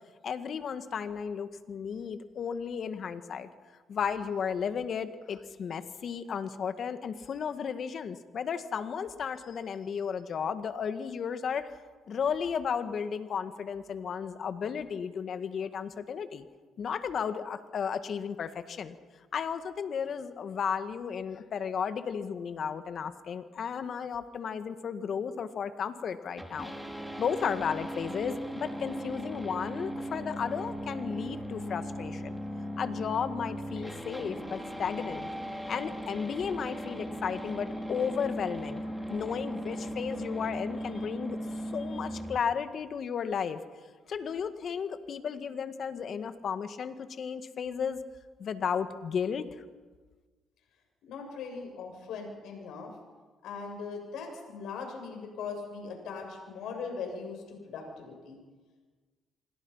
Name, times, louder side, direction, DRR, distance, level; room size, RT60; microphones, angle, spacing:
voice 1, 0.2-3.5 3.9-11.7 12.1-16.5 16.8-19.0 19.3-26.7 27.2-32.4 32.8-35.3 35.7-38.8 39.1-41.4 41.7-43.6 44.1-48.0 48.4-49.5, left 7 dB, 55° left, 10 dB, 1.9 m, -34 dB
sound 1, 26.4-42.4, equal, ahead, 4.1 m, -38 dB
voice 2, 51.1-52.9 53.4-58.4, left 5 dB, 75° left, 2 dB, 7.5 m, -40 dB
27.0 x 23.5 x 5.8 m, 1.4 s
supercardioid pair, 70°, 0 cm